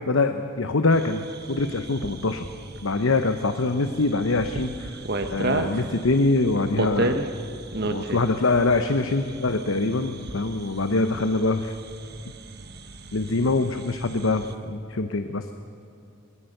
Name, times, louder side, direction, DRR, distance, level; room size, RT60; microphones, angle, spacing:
voice 1, 0.1-1.2 1.5-2.5 2.8-5.0 5.3-7.2 7.8-11.7 13.1-15.5, left 3 dB, 70° left, 8 dB, 0.9 m, -24 dB
sound 1, 0.9-14.5, right 2 dB, 50° right, 1.3 m, -34 dB
23.5 x 21.0 x 6.7 m, 2.6 s
head